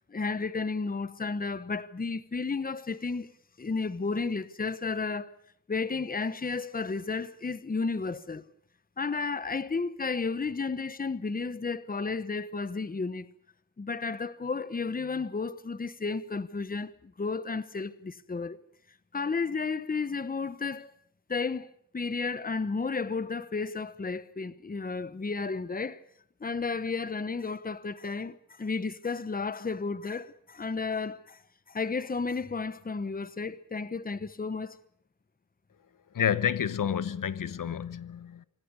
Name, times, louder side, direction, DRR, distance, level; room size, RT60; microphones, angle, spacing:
voice 1, 0.1-3.3 3.6-5.3 5.7-8.4 9.0-13.3 13.8-18.6 19.1-20.9 21.3-26.0 26.4-31.4 31.7-34.8, left 4 dB, 25° left, 1.0 m, -32 dB
voice 2, 36.1-38.4, left 8 dB, 80° left, 1.0 m, -29 dB
26.0 x 17.5 x 8.3 m
wide cardioid pair, 145°, 32 cm